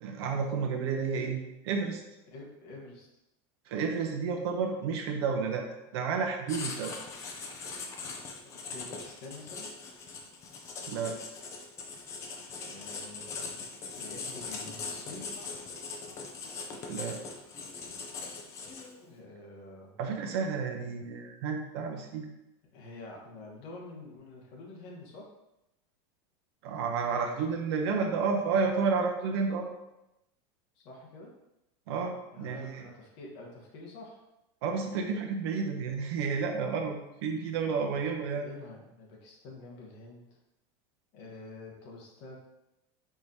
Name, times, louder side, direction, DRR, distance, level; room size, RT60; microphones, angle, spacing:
voice 1, 0.0-2.0 3.7-5.7 5.9-7.0 10.9-11.2 16.9-17.2 20.0-22.2 26.6-29.7 31.9-32.8 34.6-38.5, right 5 dB, 65° right, 2 dB, 0.7 m, -31 dB
voice 2, 2.3-3.1 8.4-9.7 12.6-15.3 19.0-20.0 22.7-25.3 30.7-31.3 32.3-34.2 37.9-38.0 38.4-40.3 41.1-42.4, left 2 dB, 40° left, -2 dB, 1.1 m, -47 dB
Writing, 6.5-19.1, left 4 dB, 20° left, 0.4 m, -41 dB
4.6 x 3.7 x 2.7 m, 0.90 s
supercardioid pair, 170°, 14 cm